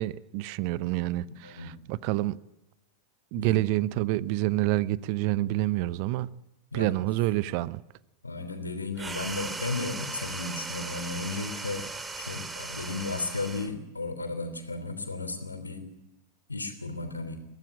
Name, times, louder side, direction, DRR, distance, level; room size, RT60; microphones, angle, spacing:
voice 1, 0.0-2.4 3.3-6.3 6.7-7.8, right 17 dB, 45° right, 0.8 m, -28 dB
voice 2, 1.2-1.8 3.4-3.5 6.7-7.0 8.2-11.8 12.2-15.9 16.5-17.4, left 3 dB, 80° left, 3.3 m, -34 dB
sound 1, 8.9-13.8, right 3 dB, 15° right, 2.5 m, -38 dB
22.5 x 17.5 x 8.9 m
figure-of-eight pair, 90°, 0 cm